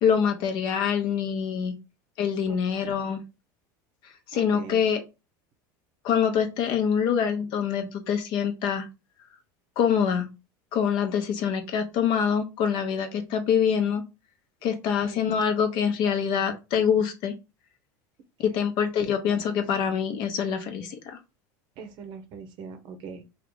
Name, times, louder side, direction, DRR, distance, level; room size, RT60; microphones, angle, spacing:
voice 1, 0.0-1.7 2.2-3.2 4.3-5.0 6.0-8.9 9.8-10.3 10.7-14.0 14.6-17.3 18.4-21.2, left 7 dB, 55° left, 6 dB, 0.8 m, -25 dB
voice 2, 4.3-4.8 14.7-15.2 18.5-18.6 21.8-23.2, right 5 dB, 55° right, 7 dB, 0.6 m, -42 dB
2.9 x 2.4 x 3.6 m, 0.27 s
supercardioid pair, 120°, 9 cm